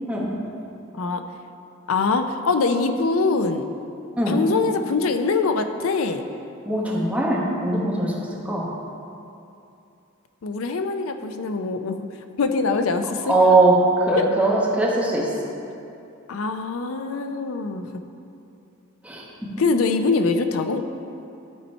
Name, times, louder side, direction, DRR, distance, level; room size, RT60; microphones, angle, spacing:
voice 1, 1.9-3.6 4.3-6.2 10.4-12.0 12.4-13.6 14.2-14.3 16.3-17.9 19.6-20.8, left 4 dB, 85° left, 7 dB, 0.5 m, -23 dB
voice 2, 6.6-8.1 8.4-8.7 13.3-15.3 19.0-19.2, right 2 dB, 5° right, -5 dB, 1.1 m, -20 dB
12.0 x 4.2 x 4.4 m, 2.7 s
head